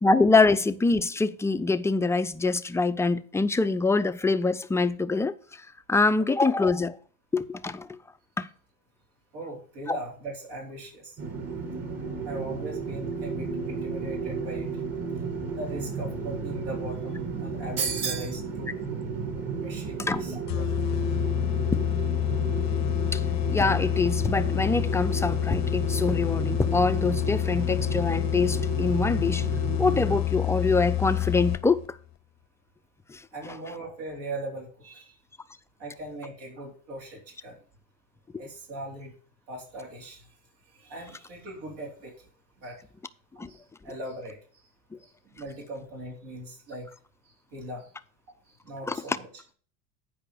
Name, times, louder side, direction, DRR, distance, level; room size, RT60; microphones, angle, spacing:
voice 1, 0.0-5.4 5.9-7.0 7.3-8.0 8.4-8.5 9.9-10.0 20.1-20.2 21.7-21.9 23.1-23.2 23.5-29.5 29.8-31.8 33.1-33.2 43.4-43.5 48.9-49.0, left 3 dB, 10° left, 0.4 m, -24 dB
voice 2, 9.3-11.2 12.2-14.7 15.5-18.7 19.6-20.7 33.3-35.2 35.8-37.6 38.4-39.1 39.5-40.3 40.8-42.3 42.6-42.8 43.5-44.4 45.0-45.1 45.4-46.9 47.5-47.9 48.6-49.3, right 1 dB, 75° right, 3.9 m, -39 dB
sound 1, 11.2-30.2, right 4 dB, 40° right, 2.0 m, -33 dB
sound 2, 17.8-18.4, right 6 dB, 60° right, 3.1 m, -29 dB
sound 3, 20.5-31.9, left 15 dB, 45° left, 0.6 m, -28 dB
8.9 x 4.9 x 6.5 m
supercardioid pair, 120°, 38 cm